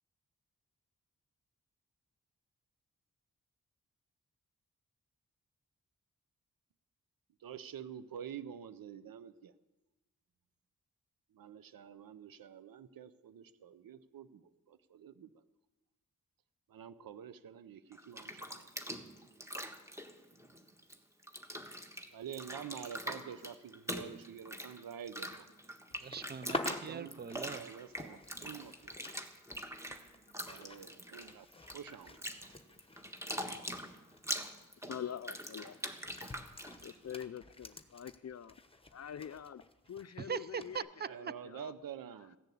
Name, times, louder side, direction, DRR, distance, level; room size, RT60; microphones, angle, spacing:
voice 1, 7.4-9.5 11.3-15.3 16.7-18.7 22.1-25.5 26.7-27.1 27.5-28.9 30.4-31.5 31.7-32.2 41.0-42.4, right 8 dB, 90° right, 0.7 m, -48 dB
Bathtub (filling or washing), 17.9-21.0 21.2-37.2, equal, 10° right, 1.4 m, -44 dB
sound 1, 25.9-29.3 29.5-34.5 34.8-35.0 35.8-40.1 40.6-40.8, left 2 dB, 15° left, 1.1 m, -47 dB
voice 2, 26.0-27.7 40.2-41.1, right 6 dB, 30° right, 0.5 m, -41 dB
voice 3, 34.8-35.8 36.8-38.6 38.9-39.6 39.9-41.7, left 9 dB, 50° left, 0.5 m, -45 dB
16.0 x 10.5 x 8.4 m
wide cardioid pair, 100°, 33 cm